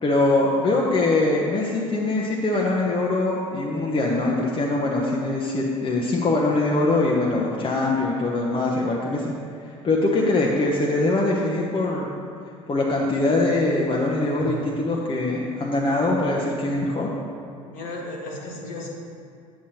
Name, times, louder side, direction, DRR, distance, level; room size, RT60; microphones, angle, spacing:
voice 1, 0.0-9.3 9.6-12.1 12.7-17.1, left 2 dB, 30° left, -3 dB, 0.9 m, -22 dB
voice 2, 17.5-18.9, left 1 dB, 55° left, -2 dB, 1.6 m, -34 dB
8.5 x 7.7 x 2.9 m, 2.4 s
hypercardioid pair, 65°, 18 cm